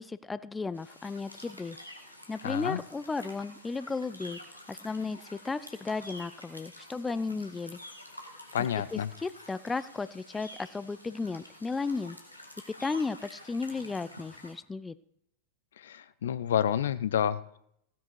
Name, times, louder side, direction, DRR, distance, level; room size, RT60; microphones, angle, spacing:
voice 1, 0.0-1.8 2.3-4.4 4.7-7.8 8.6-12.2 12.8-14.9, left 4 dB, 10° left, 16 dB, 0.4 m, -34 dB
sound 1, 0.7-14.5, left 1 dB, 90° left, 1.8 m, -49 dB
voice 2, 2.4-2.8 8.5-9.1 15.8-17.6, left 9 dB, 60° left, 16 dB, 0.6 m, -29 dB
16.0 x 9.4 x 4.7 m, 0.72 s
figure-of-eight pair, 90°, 0 cm